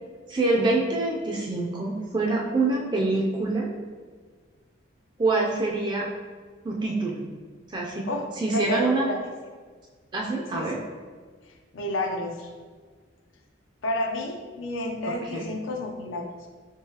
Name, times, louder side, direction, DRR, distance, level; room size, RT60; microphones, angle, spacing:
voice 1, 0.3-3.7 5.2-6.1 6.6-7.2 7.7-8.1 8.4-9.1 10.1-10.8 15.2-15.5, right 2 dB, 25° right, -2 dB, 0.3 m, -25 dB
voice 2, 8.1-9.2 10.5-10.7 11.7-12.5 13.8-16.3, left 1 dB, 80° left, 3 dB, 0.5 m, -30 dB
3.8 x 3.1 x 2.7 m, 1.5 s
head